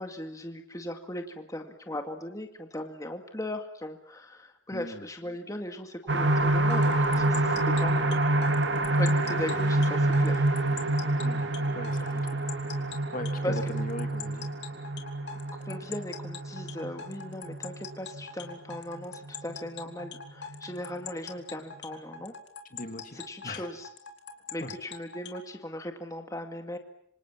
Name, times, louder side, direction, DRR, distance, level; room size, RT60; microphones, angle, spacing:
voice 1, 0.0-8.2 8.9-10.5 12.1-12.2 13.4-13.7 15.6-22.3 23.1-23.9 24.5-26.8, left 1 dB, 20° left, 5 dB, 2.1 m, -38 dB
voice 2, 4.7-5.0 11.1-11.5 11.7-12.4 13.1-14.5 22.7-23.7 24.6-24.7, left 1 dB, 45° left, 7 dB, 2.3 m, -39 dB
sound 1, 6.1-19.6 20.0-20.1 20.5-20.6, right 2 dB, 70° right, 2.3 m, -27 dB
sound 2, 6.7-25.4, left 6 dB, 65° left, 3.3 m, -43 dB
26.5 x 26.5 x 7.4 m, 0.70 s
head